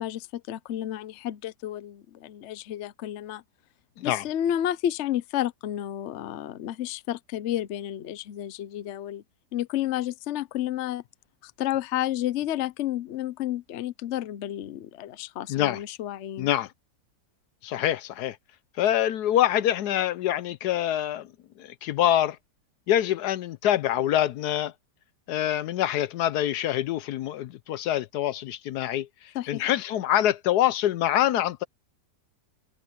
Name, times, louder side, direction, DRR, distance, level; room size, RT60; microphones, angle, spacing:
voice 1, 0.0-3.4 4.0-9.2 9.5-11.0 11.4-16.5 29.3-29.6, left 12 dB, 60° left, 0.8 m, -31 dB
voice 2, 15.5-15.8 16.4-16.7 17.6-18.4 18.8-21.3 21.6-22.4 22.9-24.7 25.3-29.1 29.5-31.6, left 12 dB, 75° left, 1.1 m, -25 dB
omnidirectional pair, 1.9 m